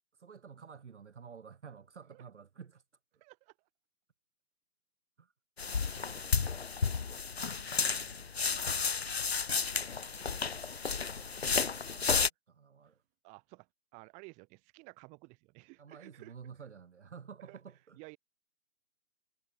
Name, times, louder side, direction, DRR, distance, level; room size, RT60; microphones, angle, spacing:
voice 1, 0.2-2.8 5.2-5.3 7.8-8.3 11.7-13.0 15.8-18.0, right 6 dB, 45° right, 2.0 m, -51 dB
voice 2, 3.2-3.5 7.9-8.9 10.0-10.6 11.8-12.2 13.2-16.3 17.5-17.6 18.0-18.2, right 28 dB, 15° right, 3.4 m, -55 dB
sound 1, 5.6-12.3, left 5 dB, 45° left, 0.5 m, -32 dB
figure-of-eight pair, 145°, 46 cm